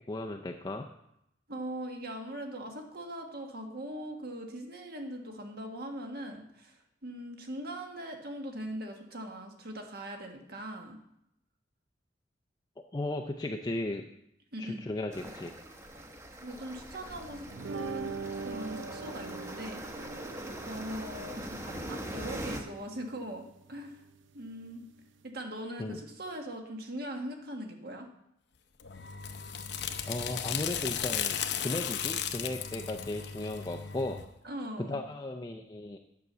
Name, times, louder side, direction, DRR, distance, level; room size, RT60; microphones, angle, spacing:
voice 1, 0.1-0.8 12.9-14.0 14.6-15.5 25.8-26.0 30.1-34.2 34.8-36.0, left 2 dB, 20° left, 3 dB, 0.5 m, -36 dB
voice 2, 1.5-11.0 14.5-14.8 16.4-20.1 20.6-23.4 23.7-24.0 24.3-24.9 25.2-28.1 34.4-35.0, right 1 dB, 55° right, 3 dB, 1.5 m, -40 dB
sound 1, 15.1-22.6, right 1 dB, 15° right, 0.9 m, -42 dB
sound 2, 17.5-25.2, right 4 dB, 80° right, 0.6 m, -43 dB
sound 3, 28.8-34.3, left 8 dB, 60° left, 0.7 m, -35 dB
9.3 x 5.9 x 6.8 m, 0.80 s
head